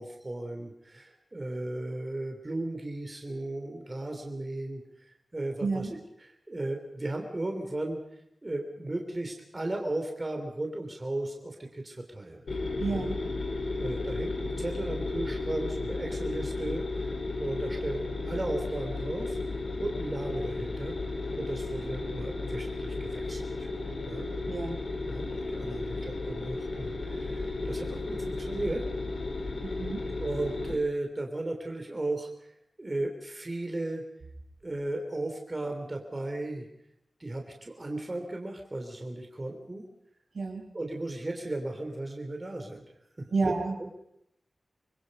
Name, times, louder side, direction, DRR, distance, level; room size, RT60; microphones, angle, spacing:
voice 1, 0.0-4.8 5.3-8.0 8.4-12.4 12.9-13.1 13.8-19.4 19.8-20.9 21.3-23.7 24.0-24.3 25.1-28.8 30.2-32.5 32.8-34.0 34.6-36.7 37.2-39.9 40.7-42.8 43.2-43.5 43.8-44.0, right 2 dB, 30° right, 2 dB, 3.2 m, -35 dB
voice 2, 5.6-5.9 12.8-13.2 24.5-24.8 29.6-30.0 40.3-40.6 43.3-43.7, right 3 dB, 75° right, 2 dB, 4.9 m, -30 dB
sound 1, 12.5-30.7, left 3 dB, 75° left, 3.9 m, -34 dB
26.0 x 21.0 x 5.4 m, 0.79 s
wide cardioid pair, 80°, 0 cm